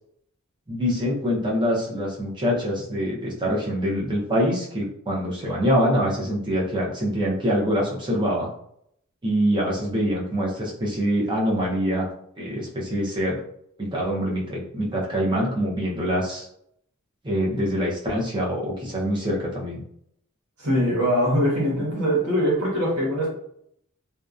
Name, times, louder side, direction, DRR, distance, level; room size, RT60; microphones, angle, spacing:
voice 1, 0.7-8.5 9.2-12.1 12.4-13.4 13.8-16.5 17.2-19.8, equal, 20° right, -4 dB, 0.7 m, -25 dB
voice 2, 20.6-23.3, equal, 85° right, -5 dB, 1.1 m, -22 dB
2.7 x 2.3 x 2.4 m, 0.70 s
head